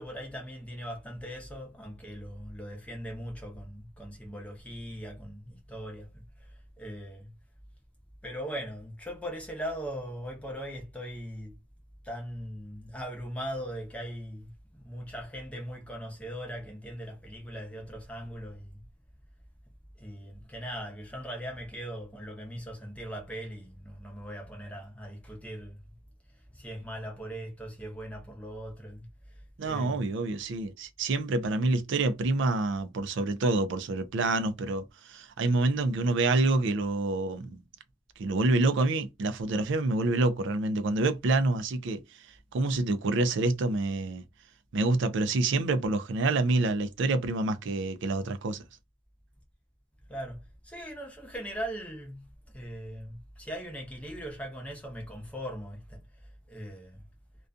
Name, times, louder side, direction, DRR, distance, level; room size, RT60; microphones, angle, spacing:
voice 1, 0.0-7.3 8.2-11.5 12.0-18.8 20.0-25.8 26.3-30.1 30.4-30.5 32.0-32.1 50.1-57.0, equal, 5° left, 0.7 m, -40 dB
voice 2, 29.6-37.6 38.2-42.0 42.5-44.2 44.7-48.6, right 2 dB, 55° right, 0.3 m, -27 dB
2.5 x 2.2 x 2.4 m
head